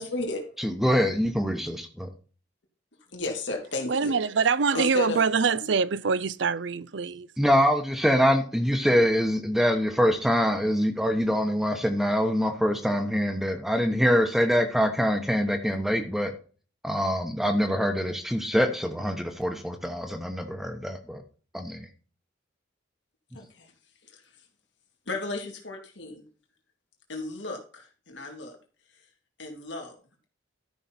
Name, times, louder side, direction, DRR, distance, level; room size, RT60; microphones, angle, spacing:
voice 1, 0.0-0.6 3.1-4.2 4.7-5.7 23.3-23.7 24.1-24.2 25.1-26.2 27.1-28.6 29.4-30.0, left 2 dB, 70° left, 2.6 m, -34 dB
voice 2, 0.6-2.1 7.4-16.3 16.8-21.2 21.5-21.9 23.3-23.4, equal, ahead, 1.0 m, -24 dB
voice 3, 3.9-7.3, right 5 dB, 70° right, 0.5 m, -24 dB
13.0 x 5.7 x 4.3 m
head